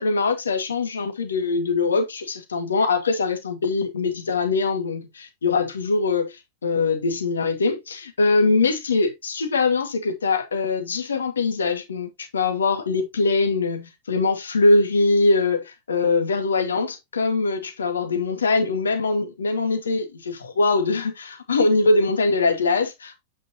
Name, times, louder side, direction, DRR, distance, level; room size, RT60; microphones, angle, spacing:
voice 1, 0.0-23.2, left 3 dB, 75° left, 1.9 m, -22 dB
8.6 x 5.9 x 2.9 m
figure-of-eight pair, 90°, 0 cm